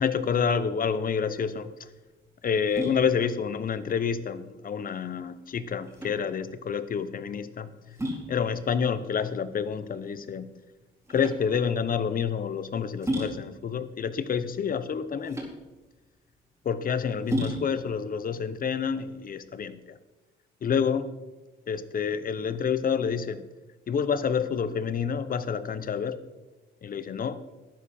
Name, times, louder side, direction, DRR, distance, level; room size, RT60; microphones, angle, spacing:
voice 1, 0.0-1.9 2.4-8.0 8.3-10.5 11.1-15.4 16.6-20.0 20.6-21.1 21.7-23.5 23.9-26.2 26.8-27.4, left 6 dB, 45° left, 14 dB, 0.9 m, -28 dB
sound 1, 1.2-19.7, right 1 dB, 15° right, 4.4 m, -37 dB
12.5 x 9.8 x 4.4 m, 1.1 s
cardioid pair, 90°, 20 cm